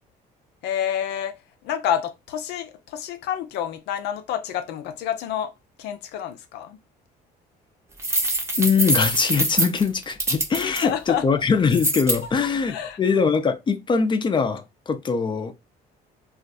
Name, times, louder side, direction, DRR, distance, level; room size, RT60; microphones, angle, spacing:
voice 1, 0.6-5.5 5.8-6.8 10.6-11.4 12.7-13.0, left 10 dB, 80° left, 0.6 m, -29 dB
sound 1, 8.0-10.8 11.7-12.2, right 1 dB, 15° right, 0.7 m, -24 dB
voice 2, 8.6-15.5, left 5 dB, 30° left, 0.6 m, -22 dB
2.5 x 2.3 x 3.8 m
cardioid pair, 110°, 17 cm